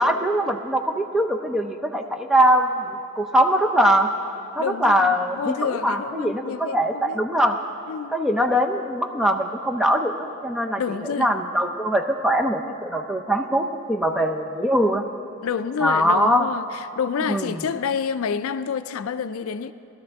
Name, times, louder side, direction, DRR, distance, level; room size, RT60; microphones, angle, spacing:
voice 1, 0.0-4.1 4.6-5.6 5.8-7.6 8.1-10.8 11.2-15.0 15.8-16.5 17.3-17.5, equal, ahead, 0.5 m, -22 dB
voice 2, 4.6-7.2 7.9-8.2 10.8-11.3 15.4-19.7, left 6 dB, 75° left, 0.4 m, -28 dB
18.0 x 12.5 x 3.5 m
head